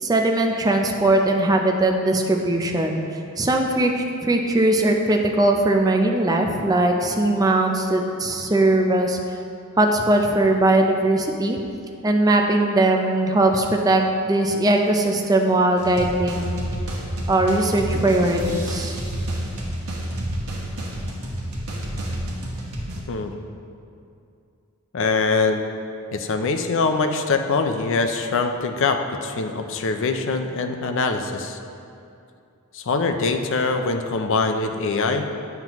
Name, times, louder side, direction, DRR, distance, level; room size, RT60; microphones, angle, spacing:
voice 1, 0.0-3.0 3.4-3.9 4.2-9.2 9.8-11.6 12.0-16.6 17.3-19.0, right 2 dB, 15° right, 2 dB, 0.5 m, -20 dB
sound 1, 15.8-23.0, right 1 dB, 80° right, 1.2 m, -29 dB
voice 2, 24.9-25.6 26.1-31.6 32.7-35.3, left 4 dB, 60° left, 6 dB, 0.5 m, -23 dB
8.9 x 5.8 x 3.0 m, 2.6 s
head